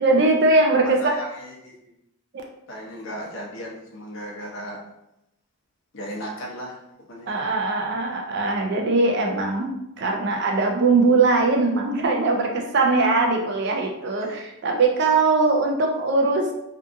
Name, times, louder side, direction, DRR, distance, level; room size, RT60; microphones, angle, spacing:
voice 1, 0.0-1.1 7.3-16.5, right 3 dB, 50° right, 1 dB, 0.4 m, -21 dB
voice 2, 0.8-1.9 2.7-4.8 5.9-6.8 7.1-7.3 14.2-14.4, equal, 60° left, -2 dB, 0.6 m, -36 dB
2.6 x 2.4 x 2.5 m, 0.84 s
head